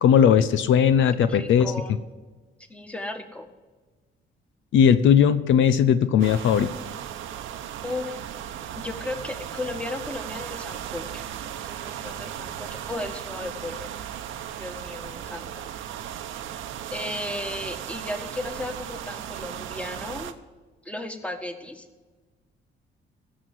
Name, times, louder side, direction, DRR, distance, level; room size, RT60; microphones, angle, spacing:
voice 1, 0.0-1.7 4.7-6.7, left 8 dB, 75° left, 12 dB, 0.7 m, -18 dB
voice 2, 1.2-2.0 2.7-3.5 7.8-8.2 8.7-11.2 11.6-13.9 14.6-15.7 16.9-20.3 20.9-21.9, left 2 dB, 5° left, 5 dB, 1.7 m, -35 dB
sound 1, 6.2-20.3, right 10 dB, 85° right, 0.9 m, -36 dB
15.5 x 6.4 x 7.7 m, 1.3 s
cardioid pair, 90°, 20 cm